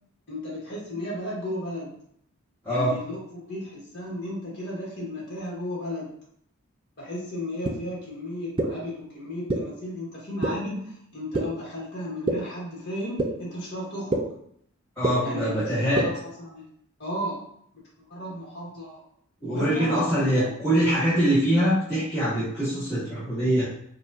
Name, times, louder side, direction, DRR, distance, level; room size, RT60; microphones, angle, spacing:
voice 1, 0.3-1.9 2.7-6.1 7.0-14.3 15.2-16.6 17.0-17.4 18.0-19.0 19.4-20.0 20.2-20.5, left 1 dB, 50° left, -5 dB, 1.4 m, -34 dB
sound 1, 7.6-7.7 8.6-8.7 9.5-9.6 10.4-10.5 11.3-11.4 12.3-12.4 13.2-13.3 14.1-14.2 15.0-15.1 16.0-16.1, right 2 dB, 25° right, 0.4 m, -23 dB
voice 2, 15.0-16.1 19.4-23.6, equal, 10° left, -14 dB, 1.3 m, -23 dB
4.6 x 2.4 x 2.6 m, 0.68 s
head